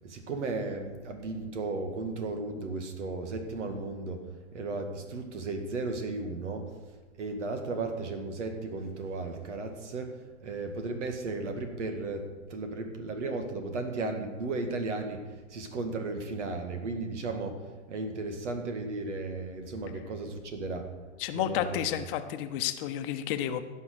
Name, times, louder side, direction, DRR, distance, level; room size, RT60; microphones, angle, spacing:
voice 1, 0.0-6.7 7.2-10.1 10.4-15.2 15.5-17.6 17.9-20.9 21.3-21.8, right 3 dB, 70° right, 6 dB, 2.0 m, -35 dB
voice 2, 21.2-23.6, left 11 dB, 45° left, 9 dB, 0.9 m, -31 dB
15.5 x 5.6 x 6.5 m, 1.3 s
hypercardioid pair, 100°, 37 cm